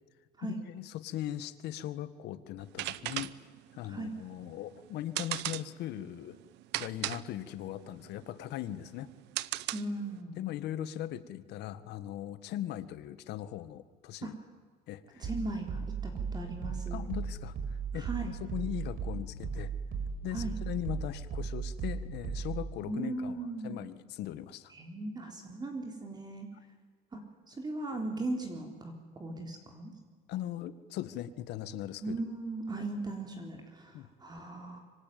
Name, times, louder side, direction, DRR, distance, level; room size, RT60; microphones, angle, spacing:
voice 1, 0.4-3.4 3.7-6.4 6.7-9.1 10.4-14.3 14.9-15.3 16.9-19.7 20.2-24.7 30.3-32.2 33.9-34.1, left 12 dB, 75° left, 13 dB, 1.8 m, -39 dB
sound 1, 2.6-10.2, right 17 dB, 80° right, 0.9 m, -38 dB
voice 2, 9.7-10.4 14.2-14.3 15.2-17.0 17.9-18.3 20.3-20.6 22.8-23.9 24.7-26.5 27.1-27.2 27.5-29.9 32.0-34.8, right 2 dB, 25° right, 3 dB, 3.9 m, -38 dB
sound 2, 15.2-22.7, right 5 dB, 55° right, 6.6 m, -37 dB
26.0 x 24.5 x 9.4 m, 1.5 s
cardioid pair, 120°, 18 cm